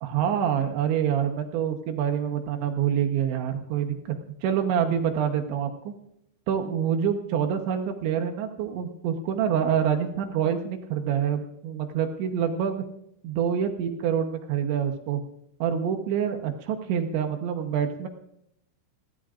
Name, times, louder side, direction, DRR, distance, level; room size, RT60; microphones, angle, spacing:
voice 1, 0.0-4.2 4.4-5.9 6.5-12.8 13.2-15.2 15.6-18.1, right 8 dB, 75° right, 4 dB, 3.2 m, -26 dB
23.5 x 16.5 x 2.5 m, 0.76 s
omnidirectional pair, 5.7 m